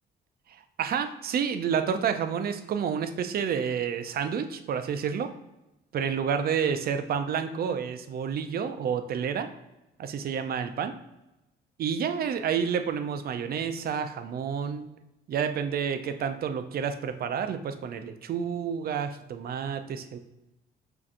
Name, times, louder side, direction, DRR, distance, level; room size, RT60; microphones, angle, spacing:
voice 1, 0.8-5.3 5.9-9.5 10.0-10.9 11.8-14.9 15.3-20.2, right 7 dB, 50° right, 8 dB, 0.4 m, -29 dB
5.6 x 2.6 x 2.5 m, 0.95 s
cardioid pair, 90°, 20 cm